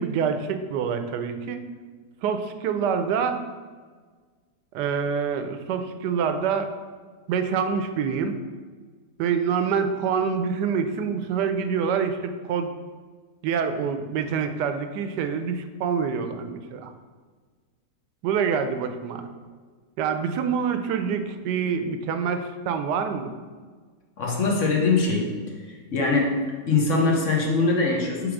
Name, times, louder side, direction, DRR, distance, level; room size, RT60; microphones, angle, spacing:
voice 1, 0.0-1.6 2.2-3.4 4.7-6.7 7.3-8.3 9.2-12.7 13.4-16.9 18.2-19.2 20.0-23.3, right 6 dB, 80° right, 8 dB, 1.2 m, -26 dB
voice 2, 24.2-25.3 25.7-26.4 26.7-28.3, left 3 dB, 55° left, -1 dB, 1.1 m, -22 dB
7.0 x 3.4 x 4.8 m, 1.5 s
omnidirectional pair, 1.8 m